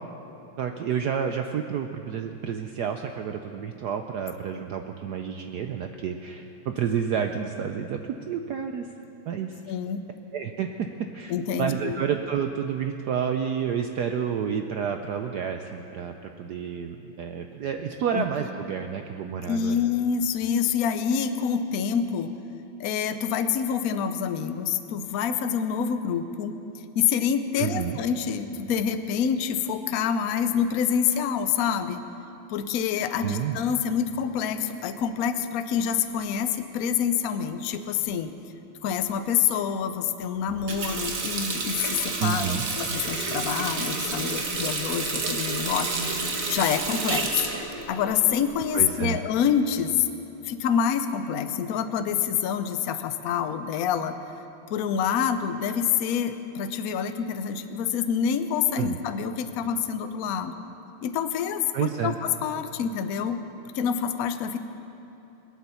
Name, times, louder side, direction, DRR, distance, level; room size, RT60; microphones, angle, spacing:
voice 1, 0.6-8.0 8.3-8.9 9.3-9.6 10.3-11.3 11.6-19.8 27.6-28.0 33.2-33.6 42.2-42.6 48.7-49.2 58.8-59.0 61.7-62.2, right 8 dB, 75° right, 5 dB, 0.9 m, -29 dB
voice 2, 9.7-10.0 11.3-12.0 18.1-18.2 19.5-22.3 22.8-26.6 26.9-32.0 32.5-38.3 38.8-47.5 47.9-50.1 50.4-54.2 54.7-60.5 61.0-63.4 63.7-64.6, left 8 dB, 85° left, 9 dB, 0.7 m, -27 dB
Water tap faucet, 40.5-48.9, right 3 dB, 45° right, 1.6 m, -30 dB
21.5 x 9.0 x 6.9 m, 3.0 s
omnidirectional pair, 2.4 m